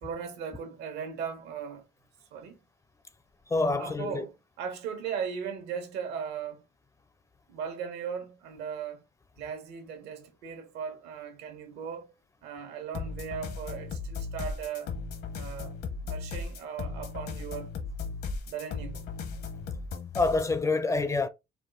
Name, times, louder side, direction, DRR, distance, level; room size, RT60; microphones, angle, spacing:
voice 1, 0.0-1.9 2.3-2.6 3.8-6.6 7.5-9.0 9.4-12.1 12.4-14.9 15.3-15.7 16.0-17.7 18.5-19.0, right 7 dB, 90° right, 1.3 m, -38 dB
voice 2, 3.5-4.3 20.1-21.3, left 3 dB, 20° left, 0.4 m, -26 dB
sound 1, 12.9-20.6, left 4 dB, 75° left, 1.1 m, -37 dB
4.7 x 2.4 x 3.9 m
cardioid pair, 110°, 17 cm